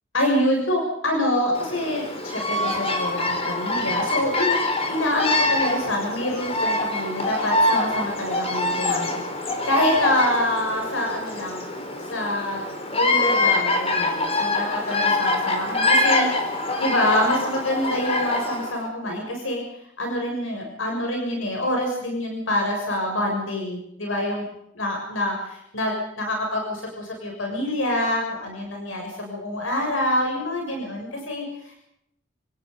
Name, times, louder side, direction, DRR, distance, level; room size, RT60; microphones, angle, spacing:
voice 1, 0.1-11.6 12.1-19.6 20.0-24.5 24.8-31.8, left 1 dB, 80° left, 1 dB, 6.9 m, -26 dB
Bird vocalization bird call bird song, 1.5-18.8, left 2 dB, 30° left, 4.1 m, -24 dB
29.5 x 18.5 x 5.5 m, 0.75 s
head